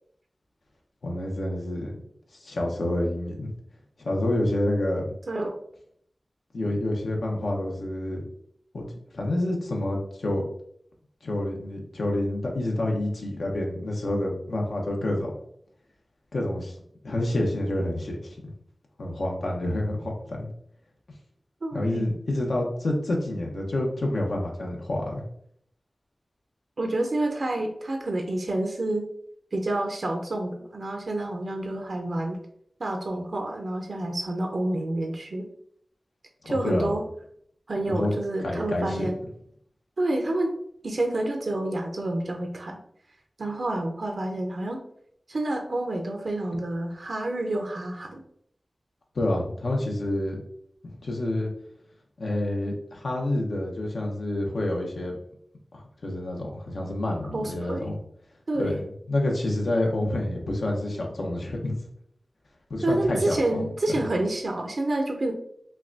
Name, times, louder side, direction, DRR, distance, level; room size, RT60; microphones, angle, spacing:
voice 1, 1.0-1.9 2.3-3.5 4.0-5.0 6.5-8.2 8.7-8.8 9.1-10.4 11.2-15.4 16.3-16.8 17.0-18.4 19.0-20.5 21.7-25.2 36.4-36.9 37.8-38.1 38.4-39.1 49.1-50.4 50.8-51.5 52.2-55.2 55.7-58.0 58.6-58.8 59.1-61.8 62.7-63.6, left 1 dB, 85° left, 0 dB, 0.9 m, -28 dB
voice 2, 21.6-22.2 26.8-29.1 29.5-32.4 32.8-35.5 36.5-37.0 37.7-39.2 40.0-40.6 40.8-42.8 43.4-44.8 45.3-48.2 57.3-57.9 58.5-58.8 62.8-65.3, right 1 dB, 75° right, 4 dB, 0.6 m, -28 dB
5.6 x 2.2 x 2.5 m, 0.66 s
wide cardioid pair, 60°, 0 cm